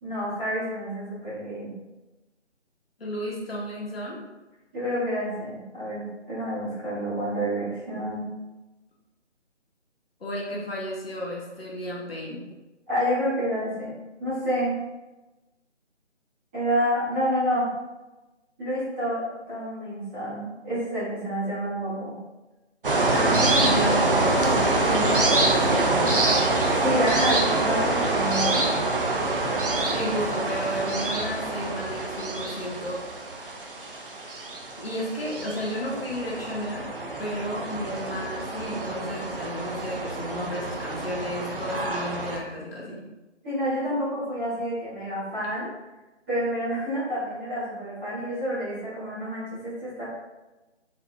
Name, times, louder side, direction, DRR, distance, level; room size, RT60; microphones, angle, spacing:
voice 1, 0.0-1.7 4.7-8.3 12.9-13.9 14.2-14.8 16.5-17.7 18.6-22.1 26.8-28.6 43.4-45.7 46.3-50.1, equal, 5° right, -17 dB, 0.9 m, -28 dB
voice 2, 3.0-4.2 10.2-12.4 23.1-26.3 29.9-33.0 34.7-36.9 37.2-43.0, equal, 55° left, -3 dB, 1.3 m, -32 dB
sound 1, 22.8-42.4, right 2 dB, 50° right, 0.7 m, -26 dB
4.2 x 4.0 x 2.6 m, 1.1 s
figure-of-eight pair, 155°, 36 cm